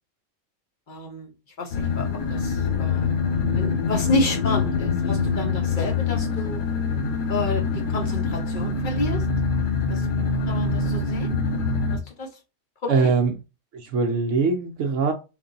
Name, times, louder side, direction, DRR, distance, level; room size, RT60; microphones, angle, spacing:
voice 1, 0.9-1.3 1.6-3.1 3.5-6.6 7.3-7.6 7.9-9.2 9.9-10.1 10.4-11.4 11.9-12.3 12.8-13.1, left 2 dB, 40° left, 0.9 m, -30 dB
sound 1, 1.7-12.0, left 4 dB, 60° left, 0.5 m, -24 dB
voice 2, 12.9-13.3 13.7-15.1, right 4 dB, 70° right, 0.9 m, -22 dB
3.3 x 2.5 x 3.9 m
omnidirectional pair, 1.5 m